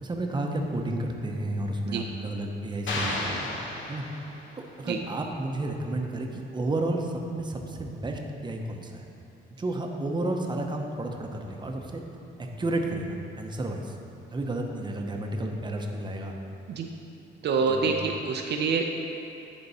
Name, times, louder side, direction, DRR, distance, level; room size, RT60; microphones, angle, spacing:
voice 1, 0.0-3.5 3.9-4.0 4.5-9.1 9.5-12.0 12.4-14.0 14.3-16.4 17.7-18.2, right 1 dB, 20° right, 2 dB, 0.8 m, -32 dB
sound 1, 2.9-4.6, left 2 dB, 70° left, 1.1 m, -32 dB
voice 2, 17.4-18.9, right 5 dB, 60° right, 2 dB, 0.5 m, -26 dB
10.5 x 3.9 x 4.1 m, 2.9 s
cardioid pair, 90°, 20 cm